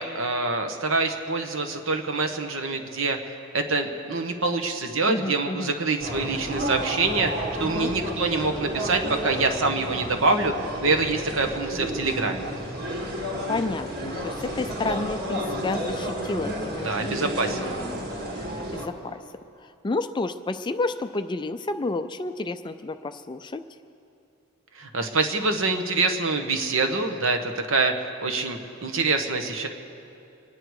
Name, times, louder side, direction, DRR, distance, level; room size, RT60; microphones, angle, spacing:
voice 1, 0.0-12.5 16.8-17.7 24.7-29.7, right 3 dB, 65° right, 5 dB, 1.3 m, -25 dB
voice 2, 5.1-5.7 7.6-7.9 13.5-17.1 17.5-18.1 18.7-19.2 19.6-23.6, left 2 dB, 20° left, 10 dB, 0.4 m, -31 dB
sound 1, 6.0-18.9, equal, 50° right, 2.0 m, -31 dB
26.0 x 10.0 x 4.8 m, 2.6 s
head